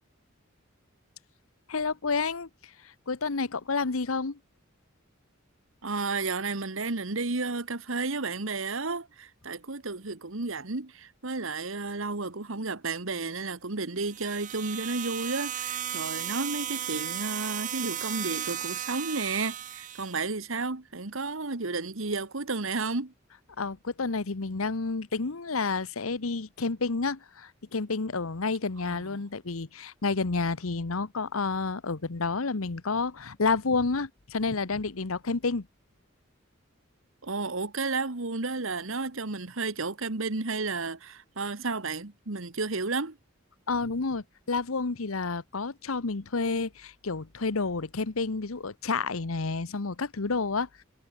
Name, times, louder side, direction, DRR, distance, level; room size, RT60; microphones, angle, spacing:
voice 1, 1.7-2.5 3.1-4.4 23.6-35.7 43.7-50.8, left 4 dB, 85° left, 1.1 m, -30 dB
voice 2, 5.8-23.1 28.9-29.2 37.2-43.2, right 3 dB, 70° right, 1.6 m, -32 dB
sound 1, 14.0-20.2, right 10 dB, 40° right, 1.1 m, -35 dB
head